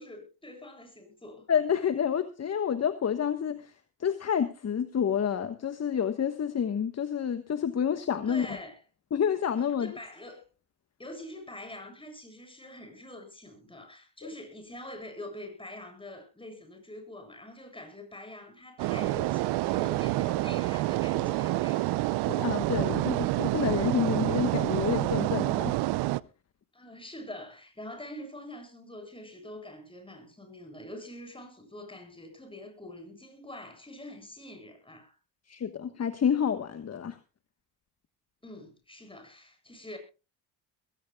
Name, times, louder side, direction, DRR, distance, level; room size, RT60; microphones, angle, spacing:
voice 1, 0.0-1.5 8.3-8.8 9.8-10.4 11.0-22.1 26.7-35.2 38.4-40.0, left 1 dB, 15° left, 7.8 m, -45 dB
voice 2, 1.5-3.7 4.0-8.6 9.1-9.9 21.2-21.3 22.3-25.7 35.5-37.2, left 8 dB, 40° left, 1.3 m, -29 dB
sound 1, 18.8-26.2, right 19 dB, 80° right, 0.6 m, -28 dB
22.0 x 16.5 x 2.3 m
cardioid pair, 85°, 39 cm